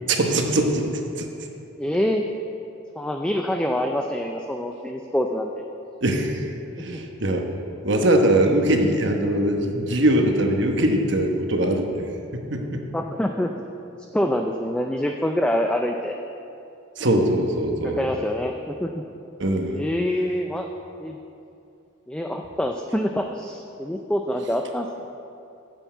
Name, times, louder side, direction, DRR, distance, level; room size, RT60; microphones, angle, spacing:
voice 1, 0.1-1.3 6.0-6.5 6.8-12.0 12.3-12.9 17.0-18.0 19.4-19.8, right 1 dB, 55° right, 3 dB, 1.0 m, -22 dB
voice 2, 1.8-2.2 3.0-5.5 6.9-7.0 12.9-13.5 14.1-16.2 17.8-19.0 19.7-20.7 21.0-21.2 22.1-24.9, left 1 dB, 5° left, 3 dB, 0.3 m, -25 dB
9.0 x 7.0 x 8.1 m, 2.7 s
head